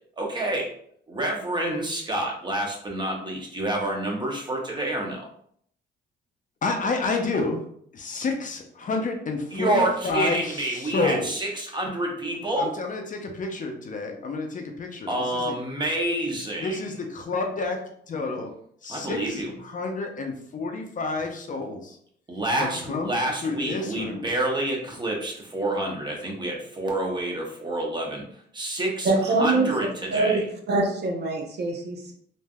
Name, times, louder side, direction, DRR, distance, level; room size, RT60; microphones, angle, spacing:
voice 1, 0.2-0.7 1.1-5.3 9.5-12.8 15.1-16.8 18.9-19.5 22.3-28.2 28.5-30.4, right 1 dB, 20° right, 0 dB, 0.9 m, -28 dB
voice 2, 6.6-7.6 7.9-11.3 12.6-15.5 16.6-17.8 18.1-18.5 18.8-22.0 22.6-23.1 23.4-24.2, left 3 dB, 40° left, 3 dB, 0.5 m, -29 dB
voice 3, 29.0-29.7 30.1-32.1, right 3 dB, 55° right, 1 dB, 0.7 m, -24 dB
3.2 x 2.6 x 2.2 m, 0.65 s
cardioid pair, 90°, 20 cm